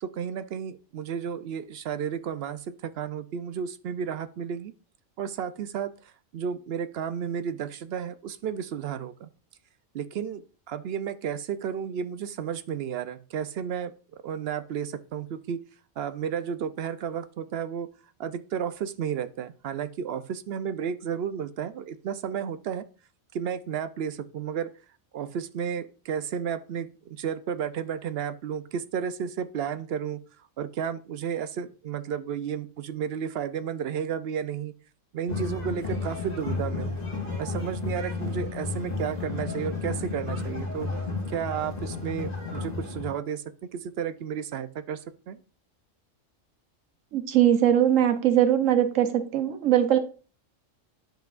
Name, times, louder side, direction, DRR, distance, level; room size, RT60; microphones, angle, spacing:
voice 1, 0.0-4.7 5.2-5.9 6.3-9.3 9.9-13.9 14.2-15.6 16.0-17.9 18.2-22.8 23.3-24.7 25.1-30.2 30.6-34.7 35.1-37.0 37.4-40.9 41.3-43.4 43.7-45.4, right 8 dB, 65° right, 12 dB, 0.7 m, -32 dB
sound 1, 35.3-43.1, left 3 dB, 30° left, 2.1 m, -32 dB
voice 2, 47.1-50.0, right 11 dB, 90° right, 8 dB, 1.1 m, -21 dB
10.0 x 5.7 x 2.4 m, 0.36 s
omnidirectional pair, 1.3 m